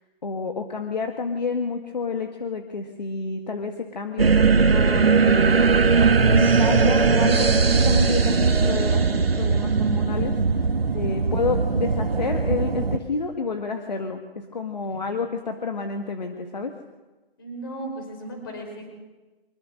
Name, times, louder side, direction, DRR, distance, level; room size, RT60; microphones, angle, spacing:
voice 1, 0.2-10.7 10.9-16.7, left 4 dB, 45° left, 4 dB, 1.8 m, -30 dB
sound 1, 4.2-13.0, right 4 dB, 75° right, 1.8 m, -19 dB
voice 2, 10.8-11.2 14.8-15.0 17.4-18.9, right 1 dB, 25° left, 3 dB, 5.0 m, -36 dB
24.5 x 21.5 x 6.4 m, 1.2 s
hypercardioid pair, 180°, 30 cm